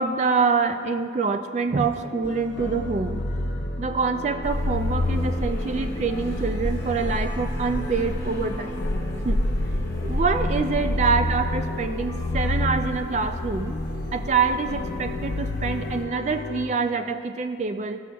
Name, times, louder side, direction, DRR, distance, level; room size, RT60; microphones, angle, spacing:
voice 1, 0.0-3.3 3.8-8.9 9.2-9.4 10.0-13.7 14.1-18.0, right 4 dB, 40° right, 8 dB, 0.3 m, -25 dB
sound 1, 2.2-16.7, left 2 dB, 80° left, 0.6 m, -30 dB
sound 2, 4.4-16.0, left 1 dB, 20° left, 1.2 m, -31 dB
14.5 x 6.2 x 2.3 m, 2.2 s
head